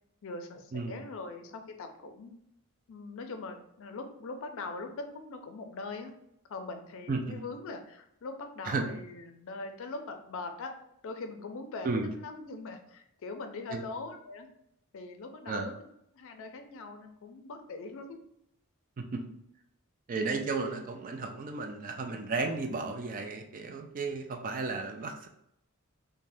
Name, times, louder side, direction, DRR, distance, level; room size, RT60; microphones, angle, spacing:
voice 1, 0.2-2.3 2.9-4.9 5.3-6.1 6.5-10.7 11.0-14.5 14.9-15.7 16.1-18.2, left 3 dB, 65° left, 6 dB, 0.4 m, -41 dB
voice 2, 7.1-7.4 8.7-8.8 11.8-12.1 13.7-13.9 15.5-15.7 19.0-19.2 20.1-25.3, right 3 dB, 40° right, 4 dB, 0.4 m, -33 dB
3.3 x 2.1 x 2.6 m, 0.77 s
head